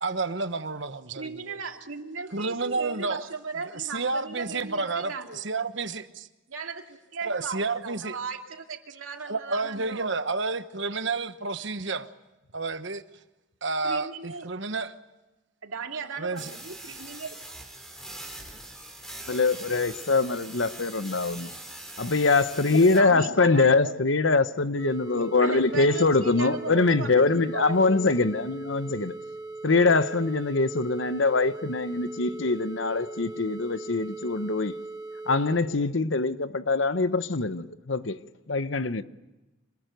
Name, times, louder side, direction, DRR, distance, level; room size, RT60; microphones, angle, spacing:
voice 1, 0.0-1.6 2.3-3.3 3.7-6.3 7.2-8.1 9.2-12.1 12.5-13.0 13.6-15.0 16.2-16.5, right 3 dB, 60° right, 1.2 m, -30 dB
voice 2, 1.1-5.4 6.5-10.2 13.8-14.5 15.6-17.3 19.5-19.6 22.9-23.9 25.1-27.9, right 4 dB, 85° right, 2.6 m, -37 dB
sound 1, 16.4-23.0, right 1 dB, ahead, 4.2 m, -42 dB
voice 3, 19.3-21.5 22.0-29.1 29.6-34.7 35.3-38.2 38.5-39.0, left 3 dB, 65° left, 1.0 m, -23 dB
sound 2, 24.8-35.6, right 2 dB, 20° right, 2.7 m, -40 dB
26.5 x 20.5 x 9.3 m
head